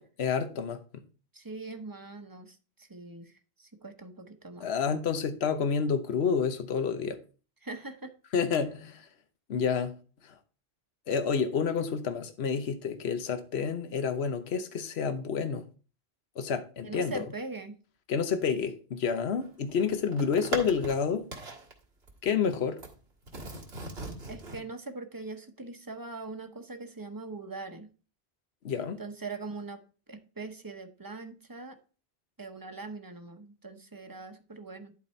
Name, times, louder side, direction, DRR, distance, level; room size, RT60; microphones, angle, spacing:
voice 1, 0.2-0.8 4.6-7.2 8.3-9.1 9.5-9.9 10.2-10.3 11.1-15.6 16.4-17.2 18.1-21.2 22.2-22.8 28.6-29.0, left 6 dB, 80° left, 1.1 m, -29 dB
voice 2, 1.3-4.7 7.6-8.1 16.8-17.8 24.3-27.9 29.0-29.8 30.1-31.8 32.4-34.9, right 3 dB, 20° right, 0.9 m, -42 dB
sound 1, 19.4-21.0 21.3-21.7 22.1-22.9 23.3-24.6, right 2 dB, 75° right, 1.9 m, -39 dB
11.0 x 4.1 x 4.4 m
omnidirectional pair, 1.1 m